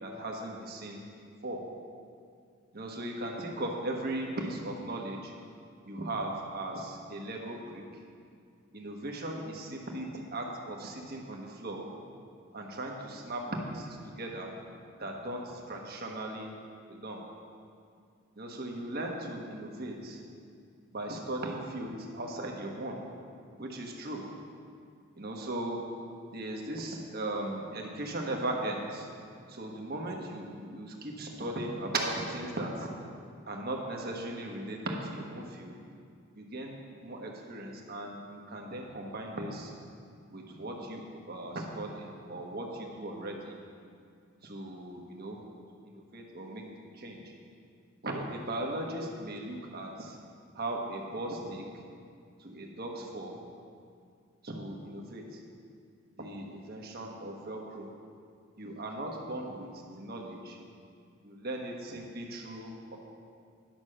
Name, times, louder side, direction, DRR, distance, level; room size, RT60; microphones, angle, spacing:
voice 1, 0.0-1.0 1.4-1.6 2.7-5.3 5.8-7.8 8.7-11.9 12.5-14.5 15.0-16.5 16.9-17.2 18.4-20.2 20.9-23.0 23.6-24.3 25.2-25.8 26.3-29.1 29.5-32.9 33.5-35.7 36.3-39.7 40.3-43.6 44.4-45.4 45.8-47.2 48.0-50.2 50.5-51.7 52.4-53.4 54.4-55.4 56.2-57.9 58.6-60.6 61.2-63.0, right 1 dB, 45° right, 0 dB, 1.3 m, -38 dB
10.5 x 6.2 x 6.5 m, 2.3 s
head